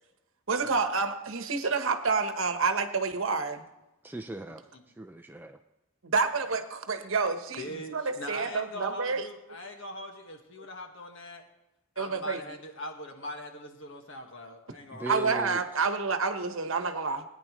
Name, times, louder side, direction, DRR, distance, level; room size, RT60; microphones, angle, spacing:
voice 1, 0.5-3.6 6.0-7.6 7.9-9.2 12.0-12.4 15.1-17.2, right 4 dB, 70° right, 8 dB, 1.1 m, -28 dB
voice 2, 4.0-4.7 5.0-5.6 14.9-15.9, right 1 dB, 10° right, 5 dB, 0.4 m, -39 dB
voice 3, 7.6-11.5 12.0-15.1, left 1 dB, 60° left, 4 dB, 1.6 m, -41 dB
18.5 x 9.8 x 3.1 m, 0.98 s
head